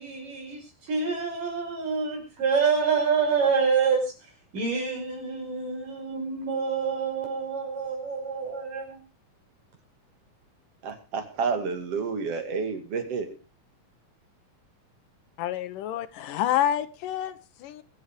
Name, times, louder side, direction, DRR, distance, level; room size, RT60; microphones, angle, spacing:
voice 1, 0.0-9.0, right 5 dB, 80° right, 6.8 m, -27 dB
voice 2, 10.8-13.4, right 5 dB, 50° right, 3.1 m, -30 dB
voice 3, 15.4-17.8, left 11 dB, 80° left, 2.5 m, -28 dB
23.5 x 8.0 x 4.9 m
omnidirectional pair, 3.8 m